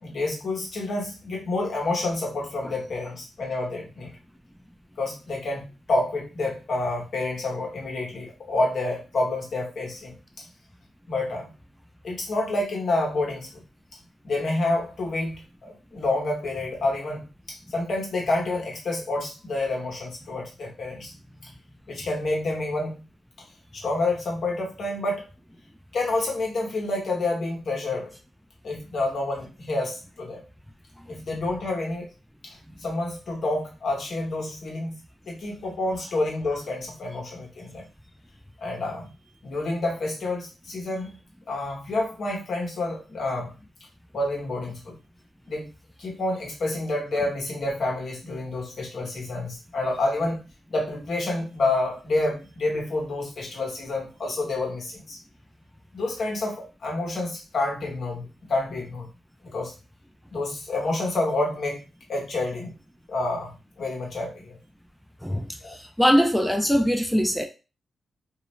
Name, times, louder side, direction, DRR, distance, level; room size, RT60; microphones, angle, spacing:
voice 1, 0.0-4.1 5.0-10.2 11.1-11.5 12.0-13.6 14.2-21.1 21.9-23.0 23.7-25.3 25.9-28.1 28.6-30.4 31.1-32.1 32.4-32.6 32.8-35.0 35.3-37.9 38.6-39.1 39.4-41.2 41.5-43.5 44.1-44.9 45.5-45.7 46.0-50.4 50.7-55.2 55.9-59.1 59.4-59.7 60.3-61.8 62.1-62.7 63.1-63.5 63.8-64.6 65.6-65.8, left 2 dB, 65° left, 1.0 m, -28 dB
voice 2, 66.0-67.4, equal, ahead, 0.4 m, -21 dB
2.5 x 2.0 x 3.0 m
cardioid pair, 60°, 0 cm